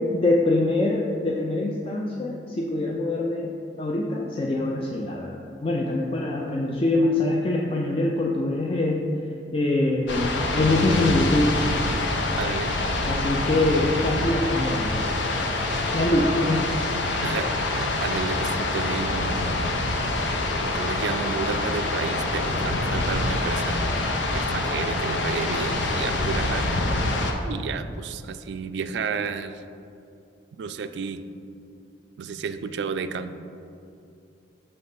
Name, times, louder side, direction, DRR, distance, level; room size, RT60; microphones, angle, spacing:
voice 1, 0.1-3.5 3.8-9.0 9.5-11.6 13.0-15.1 15.9-16.7, left 2 dB, 30° left, -1 dB, 0.4 m, -24 dB
sound 1, 10.1-27.3, left 2 dB, 85° left, 0.6 m, -26 dB
voice 2, 12.4-12.8 17.1-19.4 20.6-23.9 24.3-26.7 27.4-29.6 30.6-31.2 32.2-33.3, right 5 dB, 70° right, 10 dB, 0.3 m, -31 dB
6.3 x 3.3 x 5.7 m, 2.6 s
head